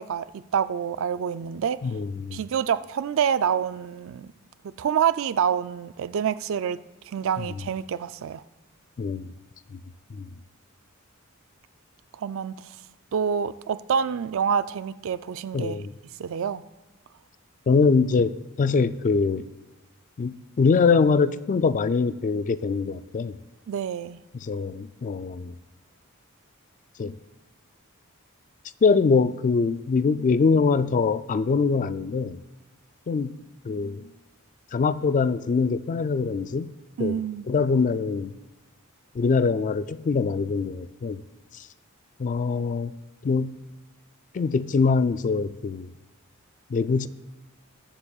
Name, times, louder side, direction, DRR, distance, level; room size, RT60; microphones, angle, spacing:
voice 1, 0.0-1.8 2.3-4.3 4.8-6.8 7.1-8.4 12.1-12.6 13.1-15.8 16.2-16.7 23.7-24.2 37.0-37.4, right 7 dB, 65° right, 0.4 m, -27 dB
voice 2, 1.8-2.4 7.4-7.5 9.0-9.3 9.7-9.8 10.1-10.3 15.5-15.9 17.7-19.5 20.2-23.4 24.3-25.6 27.0-27.1 28.8-32.4 33.1-33.4 33.6-34.1 34.7-36.7 37.0-37.2 37.5-38.3 39.1-41.2 41.5-41.7 42.2-42.9 43.2-43.6 44.3-45.9 46.7-47.1, left 4 dB, 35° left, 0.3 m, -23 dB
20.0 x 7.2 x 2.4 m
head